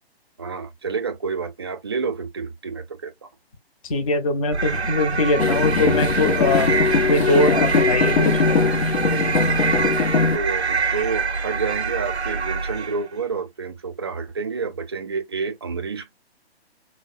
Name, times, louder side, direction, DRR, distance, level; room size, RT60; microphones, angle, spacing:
voice 1, 0.4-3.3 9.7-9.9 10.3-16.2, right 5 dB, 25° right, 0.4 m, -29 dB
voice 2, 3.8-8.6, left 2 dB, 35° left, 0.7 m, -22 dB
sound 1, 4.5-13.1, right 4 dB, 90° right, 0.6 m, -25 dB
sound 2, 5.4-10.4, left 5 dB, 75° left, 0.6 m, -21 dB
5.1 x 2.1 x 2.4 m
figure-of-eight pair, 135°, 32 cm